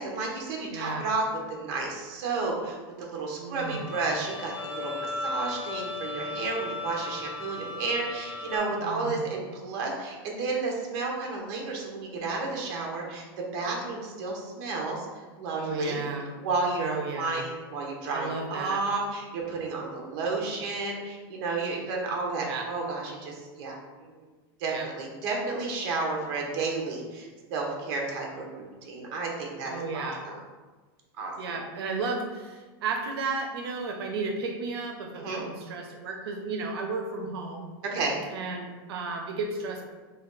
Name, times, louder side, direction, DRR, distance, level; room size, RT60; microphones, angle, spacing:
voice 1, 0.0-16.0 16.4-24.1 24.6-30.4 31.2-31.6 35.2-35.4 37.8-38.2, right 3 dB, 45° right, 0 dB, 0.7 m, -32 dB
voice 2, 0.7-1.1 3.4-3.9 8.8-9.3 15.5-16.3 16.8-17.4 18.1-18.8 22.4-22.7 24.7-24.9 29.7-30.2 31.4-37.7 38.3-39.8, right 4 dB, 90° right, 3 dB, 0.5 m, -33 dB
Bowed string instrument, 3.6-8.6, left 5 dB, 10° right, 0.5 m, -40 dB
Wind instrument woodwind instrument, 4.6-8.6, left 1 dB, 45° left, 0.7 m, -37 dB
3.2 x 2.3 x 3.7 m, 1.3 s
supercardioid pair, 165°, 13 cm